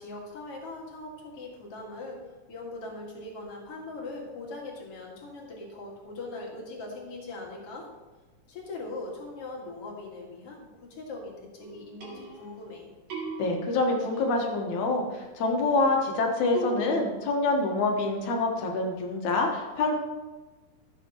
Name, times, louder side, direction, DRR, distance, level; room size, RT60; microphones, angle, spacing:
voice 1, 0.0-2.2 2.5-7.9 8.5-12.9, left 2 dB, 50° left, -2 dB, 2.7 m, -40 dB
sound 1, 11.6-12.7 13.1-14.3 16.5-16.9, right 4 dB, 85° right, 4.3 m, -37 dB
voice 2, 13.4-19.9, left 3 dB, 70° left, 2 dB, 2.6 m, -26 dB
15.0 x 7.6 x 3.0 m, 1.2 s
omnidirectional pair, 3.6 m